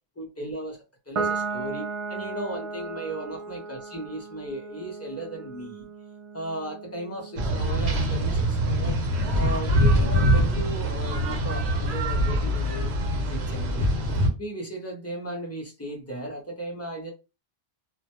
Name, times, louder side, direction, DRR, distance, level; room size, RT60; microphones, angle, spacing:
voice 1, 0.2-5.9 6.3-9.0 9.3-13.0 13.3-13.9 14.4-17.1, right 1 dB, 20° left, 0.4 m, -36 dB
Piano, 1.1-7.8, right 4 dB, 55° right, 0.3 m, -35 dB
sound 1, 7.4-14.3, equal, 80° right, 0.9 m, -24 dB
2.2 x 2.0 x 2.8 m
omnidirectional pair, 1.1 m